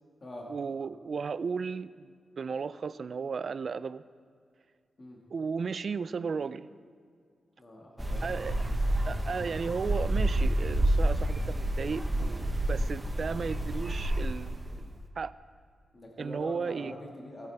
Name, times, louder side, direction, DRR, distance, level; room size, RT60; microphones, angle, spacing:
voice 1, 0.5-4.0 5.3-6.7 8.2-8.6 9.0-15.3 16.2-16.9, right 5 dB, 55° right, 16 dB, 0.3 m, -35 dB
voice 2, 7.6-8.6 15.9-17.5, left 1 dB, 35° left, -2 dB, 1.7 m, -44 dB
sound 1, 8.0-14.8, right 1 dB, 15° right, 1.0 m, -29 dB
16.5 x 8.9 x 3.4 m, 2.2 s
wide cardioid pair, 100°, 0 cm